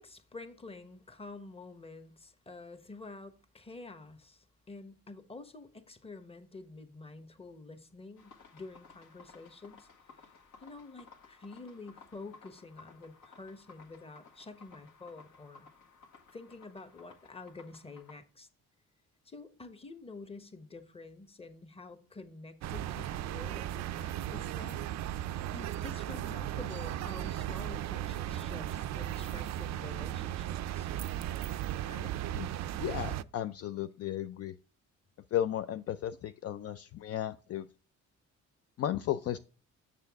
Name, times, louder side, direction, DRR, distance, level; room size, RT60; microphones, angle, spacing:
voice 1, 0.0-9.9 10.2-10.3 10.6-15.7 16.3-18.5 19.2-24.9 25.5-30.9 31.9-32.2, left 3 dB, 20° left, 1.0 m, -48 dB
sound 1, 8.2-18.2, left 4 dB, 70° left, 1.7 m, -57 dB
sound 2, 22.6-33.2, right 12 dB, 65° right, 0.4 m, -36 dB
voice 2, 32.3-34.5 35.3-37.7 38.8-39.4, left 11 dB, 55° left, 0.4 m, -35 dB
6.8 x 6.7 x 3.5 m
cardioid pair, 90°, 30 cm